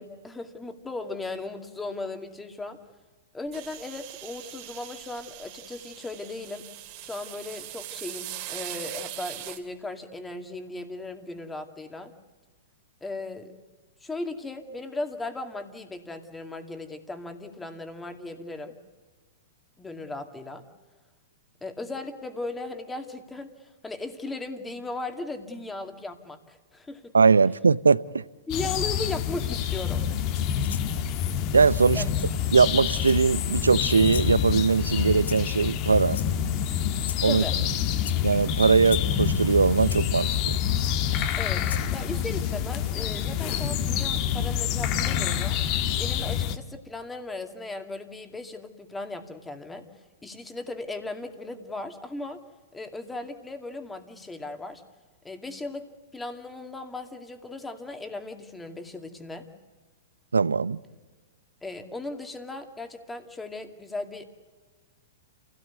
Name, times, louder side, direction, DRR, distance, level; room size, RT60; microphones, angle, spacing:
voice 1, 0.0-2.8 3.3-6.7 7.0-12.1 13.0-13.5 14.0-18.7 19.8-20.6 21.6-27.1 28.5-30.1 31.9-32.0 37.3-37.5 41.4-41.7 41.9-45.6 46.0-49.9 50.2-52.4 52.7-54.8 55.2-59.5 61.6-64.3, left 2 dB, 10° left, 2.3 m, -37 dB
sound 1, 3.5-9.6, right 13 dB, 45° right, 3.1 m, -41 dB
voice 2, 27.1-28.2 31.5-32.0 32.5-36.2 37.2-37.4 38.2-40.6 60.3-60.8, right 5 dB, 90° right, 0.6 m, -21 dB
sound 2, 28.5-46.6, left 9 dB, 40° left, 1.4 m, -27 dB
Rattle (instrument), 30.6-30.9 32.2-32.3 33.0-33.5 34.0-34.3 35.2-35.6 36.1-36.5 37.0-37.3 38.0-38.2 38.9-39.1 39.9-40.0 40.8-40.9 41.6-41.9, left 7 dB, 75° left, 0.9 m, -39 dB
28.0 x 17.0 x 8.2 m
hypercardioid pair, 110°, 0 cm